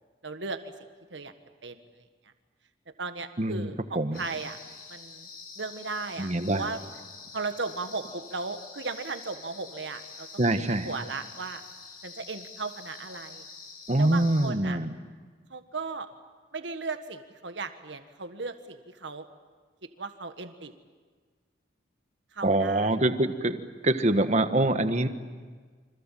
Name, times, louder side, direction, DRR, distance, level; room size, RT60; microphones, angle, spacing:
voice 1, 0.2-0.7 1.1-1.3 1.6-2.1 3.0-4.6 4.9-5.3 5.6-6.8 7.3-11.6 12.0-13.5 14.0-14.8 15.5-16.1 16.5-19.3 20.0-20.7 22.3-23.0, right 4 dB, 90° right, 8 dB, 1.6 m, -36 dB
voice 2, 3.4-3.7 3.9-4.2 6.2-6.6 10.4-10.9 13.9-14.9 22.4-23.6 23.8-25.1, right 1 dB, 40° right, 9 dB, 1.4 m, -24 dB
sound 1, 4.1-14.5, left 4 dB, 55° left, 7.1 m, -46 dB
29.0 x 25.5 x 7.6 m, 1.5 s
head